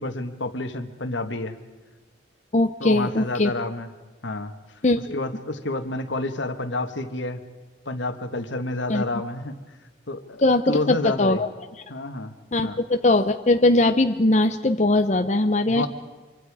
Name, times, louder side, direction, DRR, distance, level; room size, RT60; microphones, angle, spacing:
voice 1, 0.0-1.6 2.8-3.9 4.2-4.5 5.1-7.4 7.8-9.6 10.1-10.4 10.7-11.4 11.9-12.3 12.6-12.8 15.7-15.9, left 2 dB, 85° left, 8 dB, 1.6 m, -29 dB
voice 2, 2.5-3.5 4.8-5.2 8.9-9.0 10.4-11.5 12.5-15.9, left 2 dB, 40° left, 8 dB, 0.7 m, -20 dB
26.0 x 24.0 x 4.9 m, 1.3 s
head